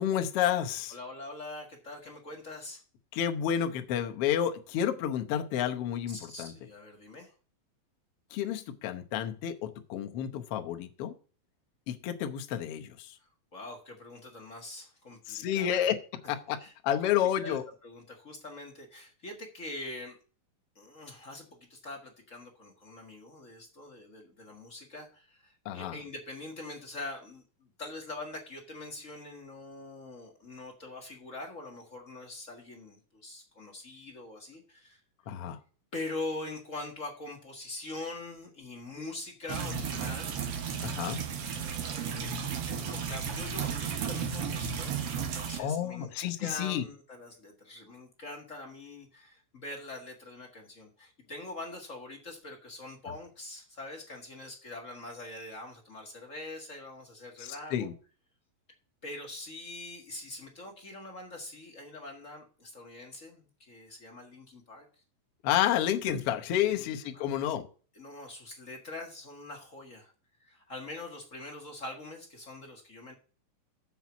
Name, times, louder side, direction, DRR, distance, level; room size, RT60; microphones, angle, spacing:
voice 1, 0.0-1.0 3.1-6.5 8.3-11.1 11.9-13.1 15.3-16.0 16.3-16.6 16.8-17.6 25.6-26.0 35.3-35.6 40.8-41.2 45.6-46.8 57.4-57.9 65.4-67.7, left 10 dB, 75° left, 5 dB, 1.3 m, -30 dB
voice 2, 0.9-2.8 6.1-7.3 13.2-15.8 16.6-16.7 17.0-20.2 20.7-35.0 35.5-35.6 35.9-40.4 41.5-46.1 46.4-57.9 59.0-65.0 66.7-66.9 67.1-67.3 67.9-70.1 70.4-73.1, left 2 dB, 40° left, 1 dB, 1.1 m, -43 dB
sound 1, 39.5-45.6, right 7 dB, 60° right, 1.6 m, -34 dB
7.1 x 6.1 x 7.0 m, 0.38 s
omnidirectional pair, 4.0 m